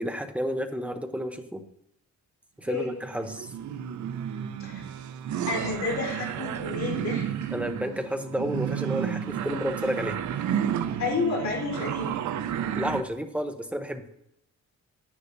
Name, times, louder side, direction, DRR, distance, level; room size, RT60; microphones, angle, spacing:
voice 1, 0.0-1.6 2.6-3.5 7.5-10.2 12.7-14.0, equal, 5° right, 7 dB, 0.7 m, -31 dB
sound 1, 2.8-13.0, right 9 dB, 70° right, 0.6 m, -32 dB
voice 2, 5.5-7.5 11.0-12.2, left 4 dB, 65° left, -2 dB, 3.8 m, -30 dB
10.5 x 9.9 x 2.6 m, 0.77 s
cardioid pair, 145°, 30 cm